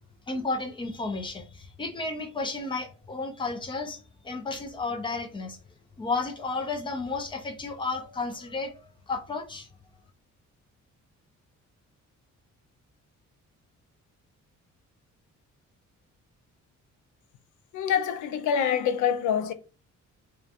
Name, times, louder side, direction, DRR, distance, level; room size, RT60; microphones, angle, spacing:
voice 1, 0.3-5.6 6.0-8.8 9.1-9.7, left 3 dB, 15° left, 0.4 m, -32 dB
voice 2, 17.7-19.5, left 8 dB, 80° left, 0.5 m, -25 dB
2.4 x 2.2 x 2.7 m
cardioid pair, 155°, 30 cm